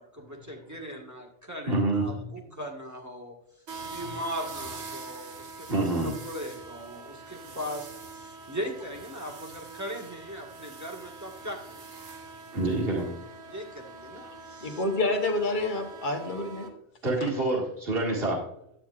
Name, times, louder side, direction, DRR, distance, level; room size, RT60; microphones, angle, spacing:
voice 1, 0.0-3.4 3.8-11.8 13.5-14.8, equal, 15° right, 0 dB, 1.5 m, -39 dB
voice 2, 1.7-2.3 4.0-4.1 5.7-6.1 12.5-13.2 17.0-18.4, right 2 dB, 60° right, -2 dB, 2.3 m, -27 dB
sound 1, 3.7-16.7, right 4 dB, 90° right, 1.4 m, -44 dB
voice 3, 14.6-16.7, left 2 dB, 50° left, 2 dB, 1.2 m, -28 dB
11.5 x 9.0 x 2.4 m, 0.76 s
omnidirectional pair, 1.1 m